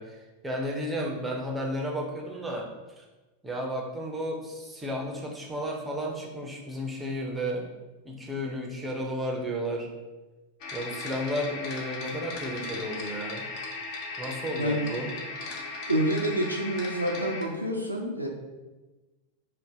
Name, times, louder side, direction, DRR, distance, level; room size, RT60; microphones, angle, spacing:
voice 1, 0.0-2.7 3.0-3.1 3.4-7.6 8.0-9.9 10.7-13.5 14.2-15.1, equal, 10° right, -1 dB, 0.5 m, -33 dB
sound 1, 10.6-17.4, left 3 dB, 45° left, 0.5 m, -37 dB
voice 2, 15.9-18.3, right 1 dB, 90° right, 0 dB, 0.4 m, -28 dB
2.6 x 2.1 x 3.3 m, 1.2 s
figure-of-eight pair, 90°, 0 cm